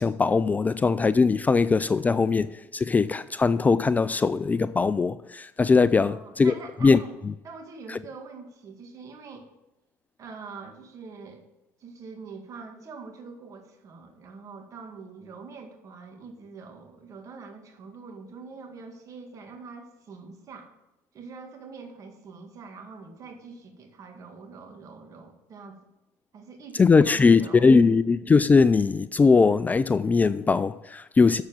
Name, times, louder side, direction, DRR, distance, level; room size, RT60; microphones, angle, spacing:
voice 1, 0.0-6.5 6.8-7.0 7.9-8.0 26.8-31.4, left 4 dB, 20° left, 0.3 m, -20 dB
voice 2, 5.9-7.1 7.4-9.5 10.2-11.4 11.8-20.7 21.1-25.8 26.3-27.8, right 4 dB, 45° right, 2.1 m, -44 dB
7.4 x 7.2 x 7.5 m
supercardioid pair, 85°, 8 cm